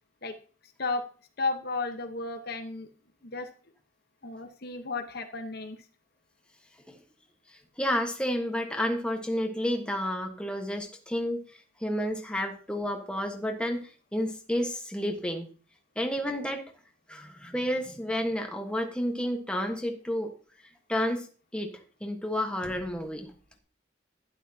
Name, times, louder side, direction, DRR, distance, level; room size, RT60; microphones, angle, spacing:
voice 1, 1.4-2.9 3.2-3.5 4.2-5.8, left 3 dB, 55° left, 6 dB, 1.1 m, -33 dB
voice 2, 7.8-11.4 11.8-15.5 15.9-16.6 17.1-20.3 20.9-21.3 21.5-23.3, equal, 5° left, 3 dB, 1.3 m, -30 dB
11.5 x 11.0 x 2.8 m, 0.39 s
head